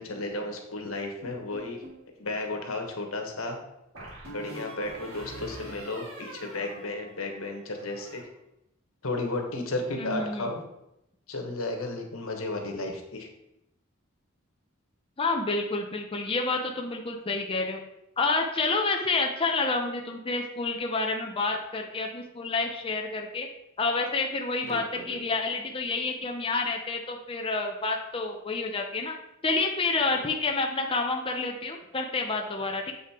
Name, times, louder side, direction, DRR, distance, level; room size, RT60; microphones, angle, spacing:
voice 1, 0.0-1.8 2.2-3.6 4.3-8.3 9.0-10.6 11.3-13.3 24.7-25.2 30.1-30.2, left 2 dB, 85° left, 3 dB, 1.5 m, -33 dB
sound 1, 1.2-2.1 3.9-7.4 7.7-8.2, right 1 dB, 90° right, 3.2 m, -44 dB
voice 2, 9.9-10.6 15.2-17.8 18.2-23.5 23.8-29.1 29.4-32.9, left 3 dB, 25° left, 2 dB, 0.7 m, -29 dB
7.6 x 5.5 x 4.4 m, 0.85 s
head